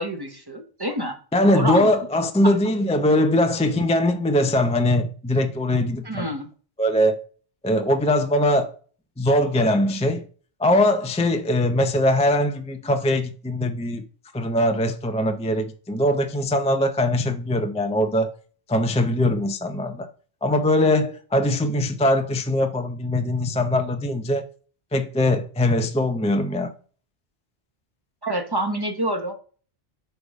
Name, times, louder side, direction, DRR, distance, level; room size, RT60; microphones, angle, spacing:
voice 1, 0.0-1.2 1.5-1.9 2.4-2.5 6.0-6.5 28.2-29.3, right 1 dB, 25° right, 1.1 m, -27 dB
voice 2, 1.3-6.3 6.8-7.2 7.6-8.7 9.2-10.2 10.6-14.0 14.3-18.3 18.7-20.1 20.4-24.4 24.9-26.7, left 1 dB, 10° left, 0.4 m, -21 dB
8.2 x 3.5 x 5.3 m
omnidirectional pair, 1.1 m